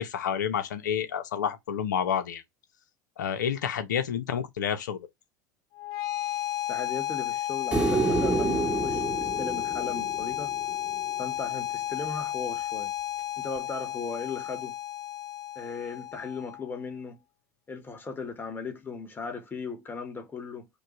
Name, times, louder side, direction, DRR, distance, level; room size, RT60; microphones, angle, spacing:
voice 1, 0.0-2.4 3.2-5.1, left 8 dB, 85° left, 0.9 m, -29 dB
sound 1, 5.7-16.8, left 13 dB, 60° left, 0.6 m, -33 dB
voice 2, 6.7-10.5 11.2-12.9 13.4-14.8 15.5-17.2 17.7-20.7, left 4 dB, 20° left, 1.4 m, -37 dB
sound 2, 7.7-11.0 13.6-13.7, right 3 dB, 10° right, 0.9 m, -28 dB
5.2 x 2.4 x 3.0 m
hypercardioid pair, 95°, 10 cm